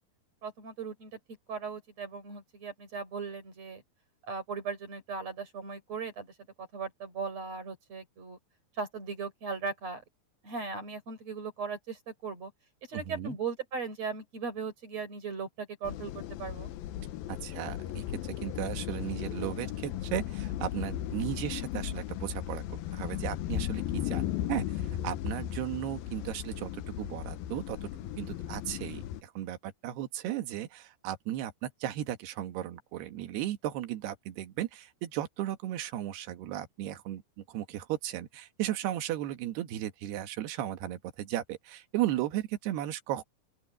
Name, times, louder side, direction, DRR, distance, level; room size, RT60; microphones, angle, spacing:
voice 1, 0.4-1.2 1.5-3.8 4.2-8.4 8.8-10.0 10.4-12.5 12.9-16.7, right 5 dB, 35° right, 6.0 m, -38 dB
voice 2, 12.9-13.4 17.3-22.6 22.9-27.9 28.2-43.2, right 12 dB, 70° right, 3.5 m, -35 dB
sound 1, 15.9-29.2, left 12 dB, 75° left, 2.4 m, -36 dB
open air
omnidirectional pair, 5.0 m